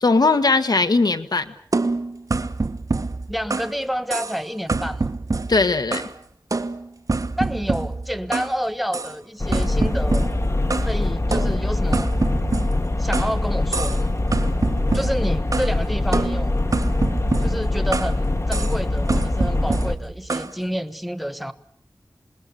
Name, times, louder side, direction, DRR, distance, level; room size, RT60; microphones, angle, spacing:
voice 1, 0.0-1.5 5.5-6.0, left 3 dB, 70° left, 10 dB, 1.6 m, -19 dB
sound 1, 1.7-3.8 4.1-4.4 4.7-6.2 6.5-8.5 8.9-9.1 9.5-10.9 11.3-13.4 13.7-14.0 14.3-15.7 16.1-18.2 18.5-18.8 19.1-20.5, right 3 dB, 55° right, 1.3 m, -26 dB
voice 2, 3.3-5.1 7.4-10.3 10.8-12.1 13.0-14.0 14.9-16.6 17.4-21.5, equal, ahead, 11 dB, 1.4 m, -29 dB
sound 2, 9.4-20.0, left 2 dB, 45° left, 1.8 m, -23 dB
27.5 x 21.0 x 7.0 m, 0.63 s
wide cardioid pair, 65°, 7 cm